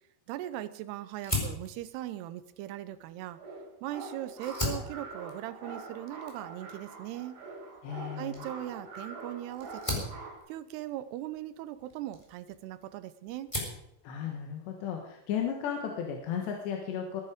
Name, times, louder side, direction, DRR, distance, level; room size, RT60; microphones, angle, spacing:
voice 1, 0.3-3.4 3.8-7.4 8.2-10.1 10.5-13.5, right 13 dB, 80° right, 13 dB, 2.6 m, -39 dB
Fire, 1.2-3.8 4.3-12.9 13.2-13.9, left 2 dB, 5° left, 3.4 m, -39 dB
sound 1, 3.4-10.4, right 3 dB, 50° right, 4.3 m, -44 dB
voice 2, 7.8-8.5 14.0-17.2, left 8 dB, 70° left, 1 dB, 3.5 m, -34 dB
21.0 x 10.5 x 5.0 m, 0.80 s
omnidirectional pair, 5.3 m